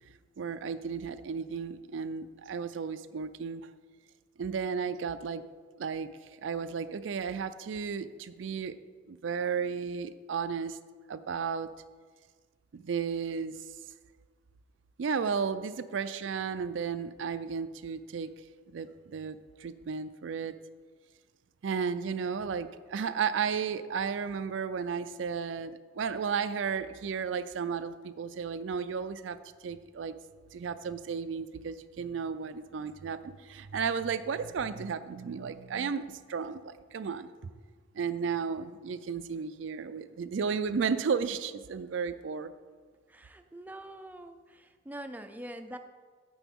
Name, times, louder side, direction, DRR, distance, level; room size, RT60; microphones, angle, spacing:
voice 1, 0.4-3.6 4.4-5.4 5.8-6.1 6.4-8.7 9.1-10.8 11.1-11.7 12.7-13.6 15.0-18.3 18.7-20.5 21.6-29.4 29.6-30.1 30.5-37.3 37.9-42.5, right 6 dB, 75° right, 12 dB, 0.4 m, -33 dB
voice 2, 43.1-45.8, right 1 dB, 10° right, 7 dB, 0.4 m, -44 dB
9.9 x 7.0 x 3.6 m, 1.5 s
head